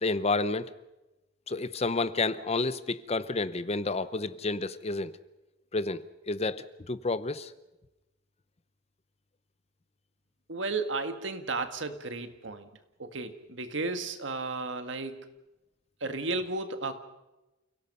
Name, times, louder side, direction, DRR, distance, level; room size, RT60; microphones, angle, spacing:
voice 1, 0.0-0.7 1.5-5.1 5.7-7.5, left 3 dB, 35° left, 15 dB, 0.8 m, -30 dB
voice 2, 10.5-12.7 13.0-15.3 16.0-17.0, right 3 dB, 75° right, 8 dB, 1.9 m, -33 dB
29.0 x 17.5 x 5.6 m, 1.0 s
head